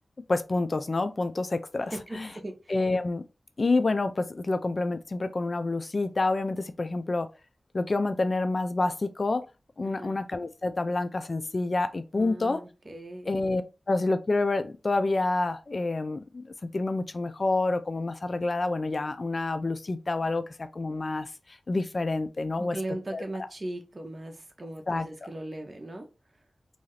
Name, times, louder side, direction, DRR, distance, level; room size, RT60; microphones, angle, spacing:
voice 1, 0.3-2.3 2.7-3.2 3.6-7.3 7.7-9.4 9.8-12.6 13.3-13.6 13.9-22.8 23.1-23.2 24.9-25.1, left 2 dB, 50° left, 0.3 m, -28 dB
voice 2, 1.9-2.7 9.8-10.2 12.1-13.3 22.6-26.1, right 1 dB, 45° right, 0.7 m, -38 dB
2.6 x 2.3 x 3.1 m
wide cardioid pair, 60°, 0 cm